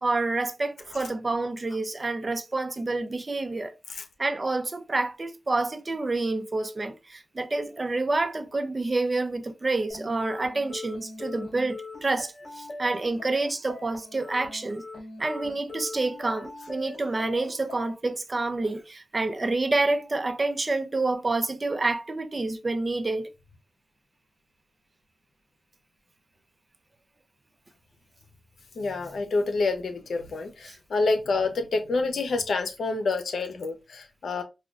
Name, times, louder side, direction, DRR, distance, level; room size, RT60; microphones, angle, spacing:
voice 1, 0.0-3.7 4.2-14.8 15.2-23.3 30.7-30.8, right 2 dB, 40° right, 0.5 m, -28 dB
sound 1, 9.9-17.9, left 3 dB, 50° left, 1.9 m, -41 dB
voice 2, 28.7-34.4, left 3 dB, 80° left, 0.7 m, -28 dB
4.9 x 2.3 x 2.4 m
cardioid pair, 50°, 0 cm